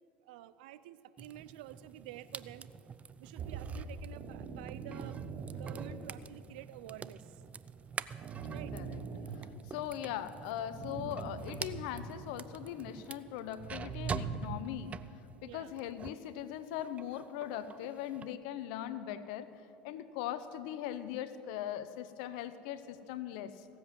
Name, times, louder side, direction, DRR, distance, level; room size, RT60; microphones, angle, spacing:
voice 1, 0.2-2.7 3.2-7.4 8.5-8.7 15.4-15.7, right 13 dB, 75° right, 15 dB, 0.5 m, -50 dB
sound 1, 1.2-16.3 16.6-18.3, right 6 dB, 30° right, 0.4 m, -46 dB
sound 2, 3.4-6.4 7.8-10.1 10.6-12.5 13.5-14.6, right 5 dB, 45° right, 1.1 m, -42 dB
voice 2, 9.3-14.9 15.4-23.7, left 11 dB, 70° left, 13 dB, 0.8 m, -40 dB
17.0 x 7.8 x 7.6 m, 2.6 s
hypercardioid pair, 85°, 5 cm